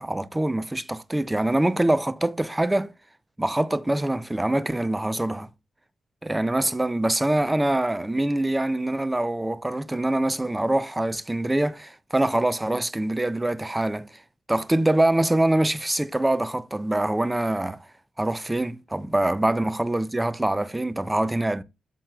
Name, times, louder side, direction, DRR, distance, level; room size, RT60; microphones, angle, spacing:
voice 1, 0.0-2.9 3.4-5.5 6.2-14.2 14.5-17.9 18.2-21.6, right 1 dB, 10° right, 0.3 m, -24 dB
8.7 x 7.5 x 2.2 m
wide cardioid pair, 165°, 0 cm